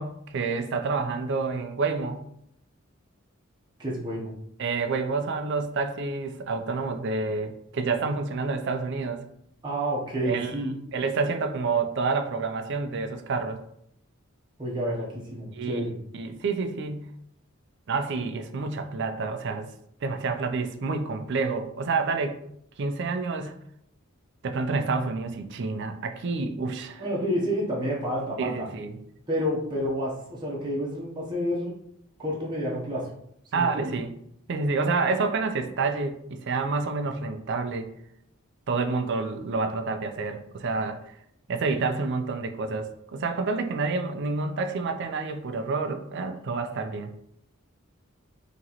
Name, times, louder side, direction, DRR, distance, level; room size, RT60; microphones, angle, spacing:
voice 1, 0.0-2.2 4.6-9.2 10.2-10.5 10.9-13.6 15.5-17.1 17.9-19.7 20.0-22.4 22.8-23.6 24.4-27.0 28.4-29.0 33.5-34.1 34.5-37.9 38.7-41.1 41.5-47.1, right 4 dB, 55° right, 7 dB, 0.4 m, -28 dB
voice 2, 3.8-4.3 9.6-10.7 14.6-15.9 27.0-28.7 29.3-31.7 32.2-33.1 33.5-33.9, equal, 20° right, -5 dB, 0.8 m, -29 dB
3.8 x 3.0 x 2.9 m, 0.71 s
head